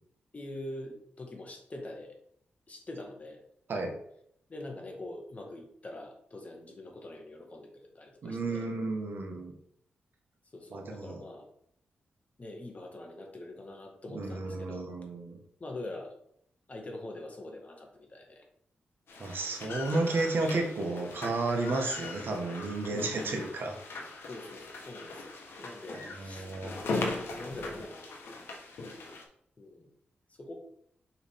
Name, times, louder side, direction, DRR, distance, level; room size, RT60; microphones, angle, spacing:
voice 1, 0.3-2.2 2.7-3.4 4.5-8.7 10.5-11.4 12.4-14.9 15.6-16.1 16.7-18.4 22.9-23.5 24.3-25.4 25.6-28.1 28.4-28.6 29.6-29.9 30.4-30.6, left 1 dB, 35° left, 1 dB, 1.6 m, -44 dB
voice 2, 8.2-9.5 10.7-11.2 14.1-15.4 19.2-23.7 26.0-26.7, right 2 dB, 65° right, 3 dB, 1.3 m, -32 dB
sound 1, 19.1-29.2, left 3 dB, 80° left, 1.1 m, -40 dB
5.5 x 4.8 x 3.5 m, 0.68 s
cardioid pair, 70°, 4 cm